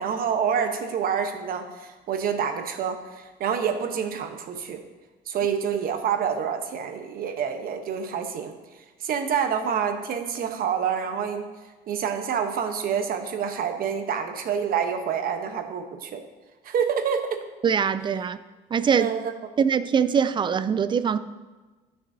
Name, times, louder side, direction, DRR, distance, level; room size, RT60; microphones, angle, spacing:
voice 1, 0.0-4.8 5.3-8.5 9.0-11.5 11.9-16.2 16.6-17.4 19.0-19.3, right 7 dB, 60° right, 6 dB, 1.0 m, -27 dB
voice 2, 17.6-18.4 18.7-19.1 19.6-21.2, right 7 dB, 30° right, 13 dB, 0.4 m, -22 dB
13.0 x 6.2 x 2.7 m, 1.2 s
cardioid pair, 110°, 17 cm